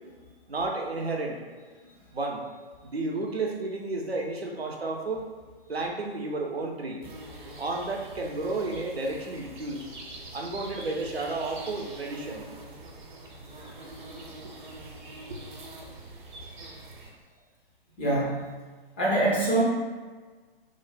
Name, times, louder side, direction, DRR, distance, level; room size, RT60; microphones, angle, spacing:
voice 1, 0.5-1.4 2.1-2.4 2.8-5.3 5.7-7.0 7.6-9.9 10.3-12.5 15.3-15.4, right 2 dB, 85° right, 1 dB, 0.6 m, -32 dB
sound 1, 7.0-17.1, right 2 dB, 50° right, 0.7 m, -44 dB
voice 2, 18.0-18.5 19.0-19.6, right 2 dB, 10° left, -7 dB, 0.3 m, -24 dB
3.1 x 2.1 x 4.0 m, 1.4 s
figure-of-eight pair, 120°, 30 cm